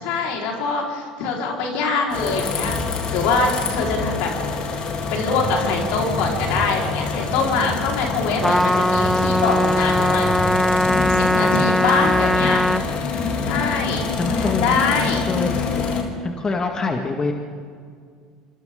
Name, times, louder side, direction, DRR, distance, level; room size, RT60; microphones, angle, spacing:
voice 1, 0.0-2.8 3.1-4.3 5.1-10.3 11.1-12.6 13.5-15.3, left 4 dB, 65° left, -1 dB, 5.0 m, -23 dB
sound 1, 2.1-16.0, left 4 dB, 45° left, 3.6 m, -26 dB
voice 2, 7.9-8.2 14.2-14.8 15.3-15.6 16.2-17.3, left 3 dB, 25° left, 3 dB, 2.1 m, -25 dB
Trumpet, 8.4-12.9, left 1 dB, 5° left, 0.9 m, -20 dB
27.0 x 26.0 x 4.0 m, 2.1 s
hypercardioid pair, 75°, 2 cm